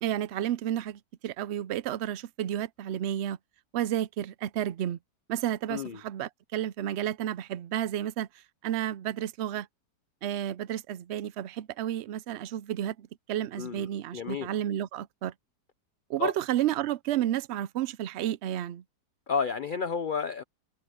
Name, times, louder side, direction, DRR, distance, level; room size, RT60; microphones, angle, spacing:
voice 1, 0.0-3.4 3.7-5.0 5.3-8.3 8.6-9.7 10.2-15.3 16.1-18.8, right 11 dB, 75° right, 0.6 m, -31 dB
voice 2, 5.7-6.0 13.6-13.9 14.1-14.5 16.2-16.3 19.3-20.4, left 6 dB, 80° left, 0.4 m, -31 dB
omnidirectional pair, 1.7 m